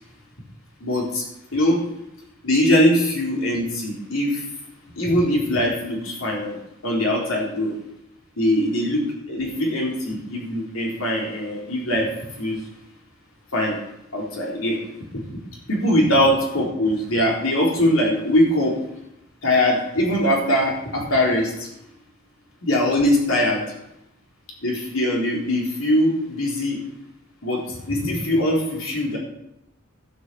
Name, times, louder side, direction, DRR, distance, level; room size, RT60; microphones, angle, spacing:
voice 1, 0.8-1.2 1.5-1.8 2.4-4.4 5.0-7.7 8.4-12.1 12.4-12.7 13.5-13.8 14.1-14.8 15.7-18.8 19.4-21.7 22.6-23.6 24.6-26.8 27.4-29.2, left 1 dB, 85° left, -2 dB, 3.9 m, -21 dB
12.5 x 7.5 x 7.0 m, 0.85 s
head